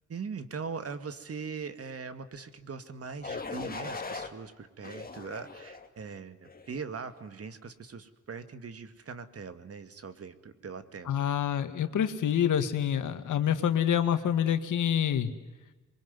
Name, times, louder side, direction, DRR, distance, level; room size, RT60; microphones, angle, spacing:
voice 1, 0.1-11.2, right 5 dB, 50° right, 11 dB, 2.2 m, -41 dB
sound 1, 3.2-4.3 4.8-5.9 6.4-6.8, left 4 dB, 30° left, 2.6 m, -39 dB
voice 2, 11.1-15.3, left 9 dB, 90° left, 9 dB, 2.0 m, -27 dB
26.5 x 23.0 x 9.6 m, 1.2 s
cardioid pair, 100°, 30 cm